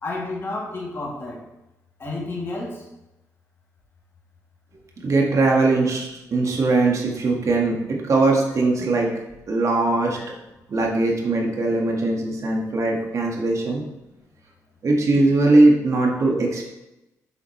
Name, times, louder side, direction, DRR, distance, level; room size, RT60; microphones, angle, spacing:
voice 1, 0.0-1.4 2.0-2.9 10.2-10.3, left 2 dB, 40° left, -3 dB, 2.7 m, -31 dB
voice 2, 5.0-9.1 9.5-10.2 10.7-13.8 14.8-16.6, right 2 dB, 55° right, 0 dB, 1.8 m, -20 dB
8.1 x 7.3 x 3.3 m, 0.94 s
cardioid pair, 90°, 6 cm